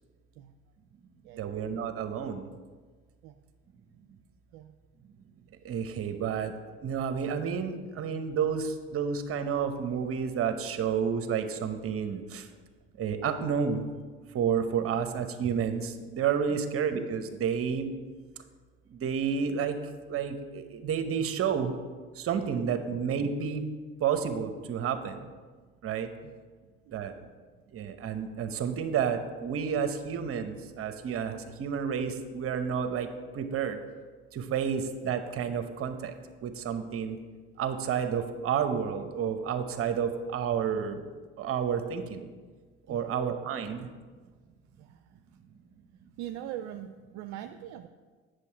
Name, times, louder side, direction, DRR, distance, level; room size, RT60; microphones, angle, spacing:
voice 1, 1.4-2.5 5.6-6.5 6.8-12.4 13.0-13.8 14.3-17.9 19.0-19.8 20.1-21.7 22.2-23.6 24.0-25.2 25.8-26.1 26.9-27.1 27.7-33.1 33.3-33.8 34.4-36.1 36.4-37.2 37.6-41.0 41.4-42.2 42.9-43.8, right 7 dB, 45° right, 8 dB, 0.9 m, -30 dB
voice 2, 44.8-45.2 46.2-47.9, right 12 dB, 65° right, 8 dB, 0.5 m, -42 dB
8.3 x 6.5 x 4.5 m, 1.5 s
hypercardioid pair, 70°, 31 cm